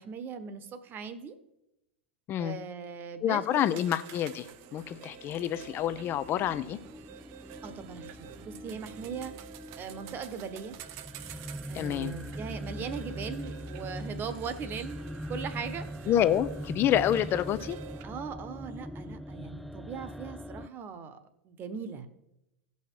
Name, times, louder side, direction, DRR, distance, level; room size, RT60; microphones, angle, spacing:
voice 1, 0.0-1.3 2.4-3.7 7.6-9.4 9.8-10.7 11.7-15.0 15.3-15.9 18.0-21.2 21.4-22.1, right 6 dB, 35° right, 12 dB, 1.3 m, -39 dB
voice 2, 3.2-4.5 4.7-6.8 11.7-12.1 16.1-17.8, left 11 dB, 40° left, 13 dB, 0.6 m, -28 dB
sound 1, 3.5-18.0, right 11 dB, 50° right, 0.8 m, -49 dB
sound 2, 4.5-20.7, equal, ahead, 0.3 m, -42 dB
16.5 x 5.7 x 4.6 m, 0.90 s
hypercardioid pair, 95°, 6 cm